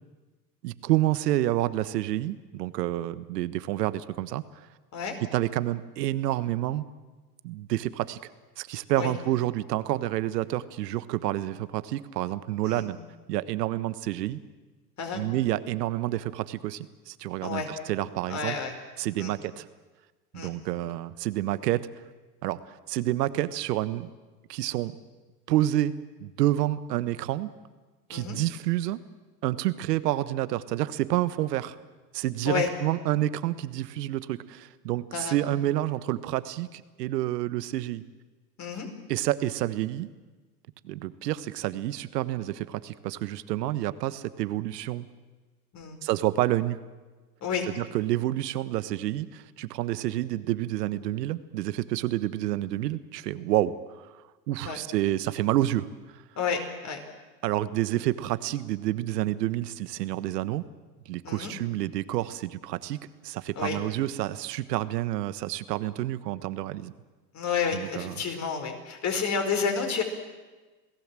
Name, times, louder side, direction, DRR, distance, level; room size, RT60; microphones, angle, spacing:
voice 1, 0.6-4.4 5.3-6.9 7.4-8.2 8.6-13.0 13.3-14.4 15.1-18.6 19.0-19.7 20.3-21.9 22.4-24.1 24.5-24.9 25.5-27.5 28.1-29.0 29.4-31.8 32.1-38.0 39.1-40.1 40.8-45.1 46.0-46.8 47.7-54.1 54.5-55.9 57.4-60.6 61.1-66.9 67.7-68.1, right 14 dB, 80° right, 14 dB, 1.4 m, -29 dB
voice 2, 18.3-18.7 19.2-19.3 20.3-20.5 28.1-28.4 32.4-32.7 35.1-35.4 38.6-38.9 45.7-46.0 47.4-47.7 54.6-54.8 56.4-57.0 61.2-61.5 63.5-63.8 67.3-70.0, left 6 dB, 35° left, 5 dB, 4.9 m, -30 dB
28.0 x 17.5 x 7.6 m, 1.3 s
hypercardioid pair, 105°, 48 cm